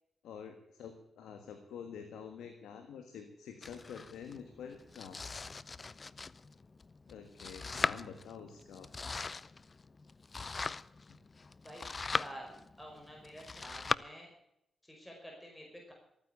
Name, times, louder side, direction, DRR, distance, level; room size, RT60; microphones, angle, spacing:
voice 1, 0.2-5.2 7.1-8.9 11.1-11.2, left 7 dB, 90° left, 7 dB, 1.5 m, -48 dB
Domestic sounds home sounds, 3.6-14.0, left 4 dB, 40° left, 0.5 m, -40 dB
voice 2, 12.2-14.3 14.8-15.9, equal, 10° left, 0 dB, 5.3 m, -49 dB
14.5 x 9.6 x 8.1 m, 0.81 s
cardioid pair, 55°, 0 cm